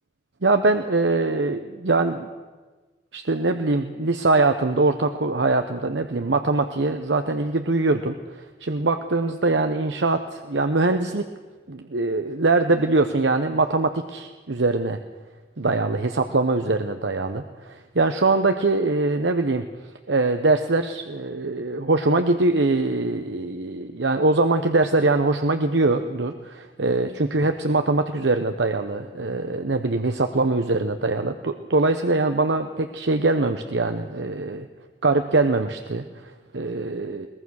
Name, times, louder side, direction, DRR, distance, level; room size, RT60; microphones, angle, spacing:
voice 1, 0.4-2.3 3.1-8.2 8.6-11.3 11.7-15.0 15.6-19.6 20.1-34.7 35.0-37.3, right 3 dB, 85° right, 7 dB, 0.9 m, -22 dB
22.0 x 19.0 x 6.4 m, 1.3 s
head